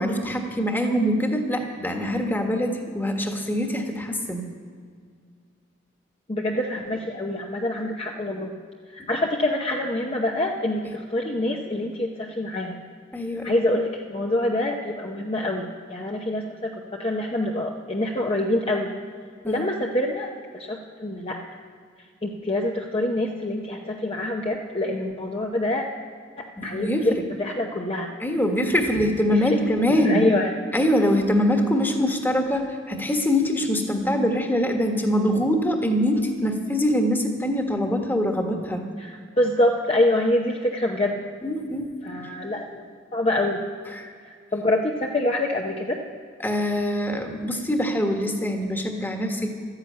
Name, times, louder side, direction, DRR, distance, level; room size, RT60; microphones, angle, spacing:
voice 1, 0.0-4.4 13.1-13.5 19.4-19.6 26.6-27.2 28.2-30.2 30.7-38.8 41.4-41.9 43.9-44.1 46.4-49.5, equal, 10° left, 3 dB, 1.5 m, -23 dB
voice 2, 6.3-8.6 8.9-12.8 13.4-18.9 19.4-21.4 22.2-25.8 26.4-28.1 29.3-30.5 39.0-41.2 42.0-42.8 43.1-43.6 44.3-46.0, left 1 dB, 30° left, 0 dB, 0.8 m, -26 dB
12.5 x 10.5 x 8.7 m, 2.1 s
head